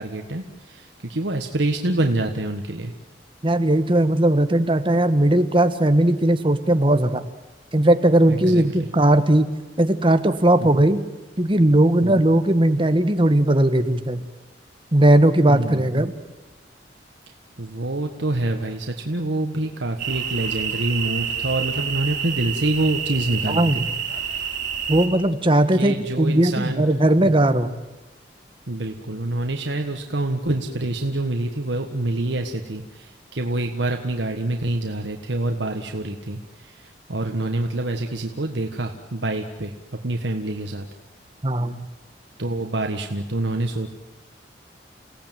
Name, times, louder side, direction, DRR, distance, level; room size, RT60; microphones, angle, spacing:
voice 1, 0.0-2.9 8.3-8.9 10.6-10.9 12.0-12.3 15.5-16.1 17.6-23.8 24.2-24.4 25.7-26.9 27.2-27.5 28.7-40.8 42.4-43.9, right 2 dB, 80° right, 4 dB, 1.6 m, -26 dB
voice 2, 3.4-7.2 7.7-9.5 9.8-11.0 11.4-14.2 14.9-16.1 23.5-23.8 24.9-27.7 41.4-41.9, right 1 dB, 30° right, 9 dB, 1.4 m, -18 dB
sound 1, 20.0-25.1, right 7 dB, 45° right, 6.1 m, -28 dB
29.0 x 17.5 x 9.2 m, 1.1 s
head